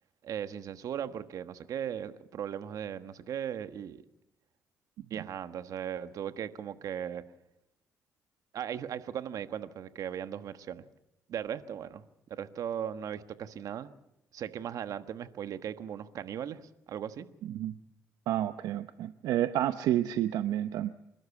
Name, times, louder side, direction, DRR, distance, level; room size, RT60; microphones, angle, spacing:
voice 1, 0.2-4.0 5.1-7.2 8.5-10.8 11.3-12.0 12.3-14.0 14.3-17.3, right 9 dB, 70° right, 11 dB, 1.4 m, -38 dB
voice 2, 18.3-20.9, right 12 dB, 85° right, 11 dB, 0.7 m, -30 dB
28.5 x 12.5 x 8.5 m, 0.88 s
cardioid pair, 80°, 6 cm